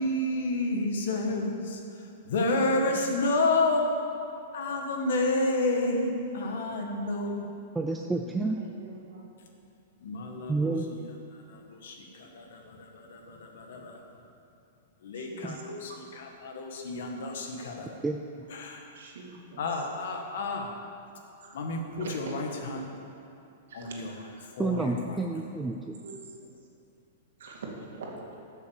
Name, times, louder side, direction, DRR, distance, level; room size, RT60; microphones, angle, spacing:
voice 1, 0.0-4.0 4.5-7.6 8.2-8.4 10.0-11.0 11.3-14.0 15.0-17.9 18.5-18.9 19.6-20.8 21.5-22.9 23.7-25.4, left 2 dB, 60° left, 2 dB, 1.6 m, -30 dB
voice 2, 2.5-2.9 8.6-9.3 15.1-15.6 15.9-16.0 18.9-19.6 20.3-20.4 21.4-21.5 22.0-22.3 23.7-24.4 24.8-24.9 26.0-26.5 27.4-28.3, right 3 dB, 75° right, -1 dB, 2.4 m, -42 dB
voice 3, 7.8-8.6 10.5-10.9 15.4-15.6 18.0-18.2 24.6-26.0, right 3 dB, 5° right, 2 dB, 0.3 m, -29 dB
12.0 x 6.7 x 7.1 m, 2.7 s
supercardioid pair, 180°, 0 cm